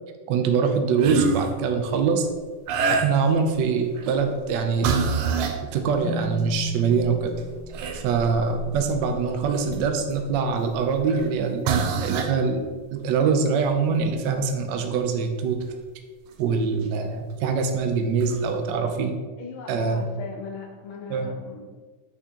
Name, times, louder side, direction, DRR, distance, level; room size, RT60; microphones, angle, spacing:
voice 1, 0.3-2.3 2.9-5.1 5.7-7.4 7.9-11.7 12.0-12.7 12.9-15.6 16.4-19.1 19.7-20.1 21.1-21.3, right 5 dB, 70° right, 5 dB, 1.2 m, -24 dB
sound 1, 1.0-1.5 2.7-3.4 4.0-4.2 4.8-5.6 6.5-6.6 7.0-10.1 11.1-11.3 11.6-12.4 15.6-15.7 17.4-17.5 18.2-18.4, right 5 dB, 85° right, 1.6 m, -26 dB
sound 2, 6.0-9.6, equal, 35° left, 0.8 m, -36 dB
voice 2, 19.4-21.8, left 5 dB, 75° left, 0 dB, 1.7 m, -38 dB
6.1 x 6.1 x 2.9 m, 1.4 s
omnidirectional pair, 2.3 m